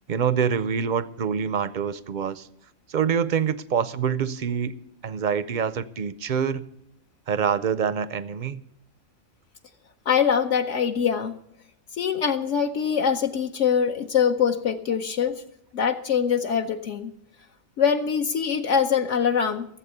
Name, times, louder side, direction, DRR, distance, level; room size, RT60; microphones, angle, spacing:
voice 1, 0.1-2.5 2.9-4.7 5.0-6.7 7.3-8.6, right 7 dB, 55° right, 0.5 m, -25 dB
voice 2, 10.1-11.4 12.0-15.4 15.7-17.1 17.8-19.7, left 7 dB, 65° left, 1.1 m, -23 dB
15.5 x 7.8 x 6.7 m
omnidirectional pair, 1.4 m